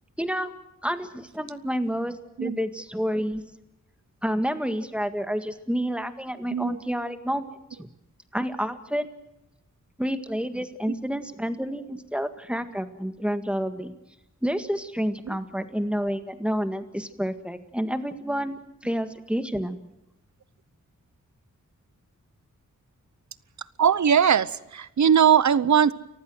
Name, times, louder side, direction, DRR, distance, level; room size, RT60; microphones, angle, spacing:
voice 1, 0.2-0.5 0.8-3.4 4.2-7.5 7.8-7.9 8.3-9.1 10.0-13.9 14.4-19.8, equal, 5° right, 8 dB, 1.8 m, -29 dB
voice 2, 23.8-25.9, right 8 dB, 65° right, 17 dB, 0.9 m, -20 dB
29.0 x 15.5 x 7.8 m, 0.90 s
wide cardioid pair, 80°, 31 cm